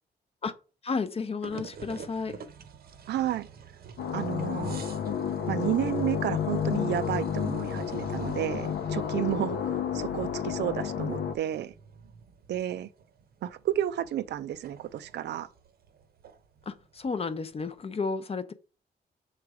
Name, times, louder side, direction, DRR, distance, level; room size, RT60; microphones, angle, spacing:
voice 1, 0.8-2.4 16.7-18.5, left 4 dB, 35° left, 0.6 m, -32 dB
sound 1, 1.4-17.8, right 6 dB, 65° right, 0.8 m, -48 dB
voice 2, 3.1-3.5 4.1-4.8 5.5-11.7 12.5-12.9 13.4-15.5, right 12 dB, 85° right, 0.5 m, -31 dB
sound 2, 4.0-11.3, left 8 dB, 90° left, 0.7 m, -31 dB
6.9 x 3.3 x 4.8 m
cardioid pair, 105°, 17 cm